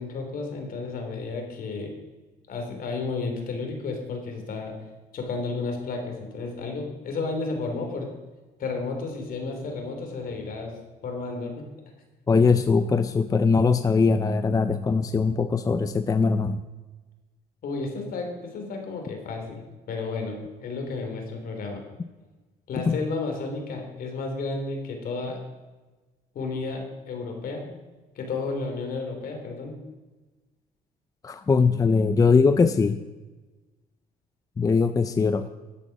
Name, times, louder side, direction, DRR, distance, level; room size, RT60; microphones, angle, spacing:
voice 1, 0.0-1.9 2.5-4.7 5.1-8.1 8.6-10.7 11.0-11.7 17.6-19.6 19.9-21.8 22.7-25.4 26.3-27.6 28.1-29.8, left 3 dB, 60° left, 3 dB, 3.3 m, -32 dB
voice 2, 12.3-16.6 22.9-23.0 31.2-33.0 34.6-35.5, left 4 dB, 20° left, 11 dB, 0.5 m, -21 dB
13.0 x 8.2 x 6.0 m, 1.2 s
cardioid pair, 110°, 17 cm